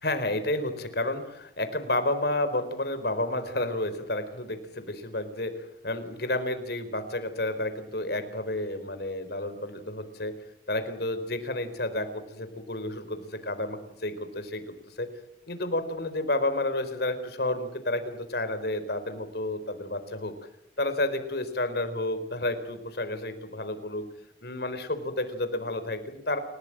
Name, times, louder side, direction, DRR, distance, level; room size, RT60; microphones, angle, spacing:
voice 1, 0.0-5.5 5.8-10.3 10.7-15.1 15.5-20.3 20.8-24.1 24.4-26.4, left 1 dB, 60° left, 10 dB, 4.3 m, -31 dB
29.5 x 18.0 x 7.7 m, 0.79 s
head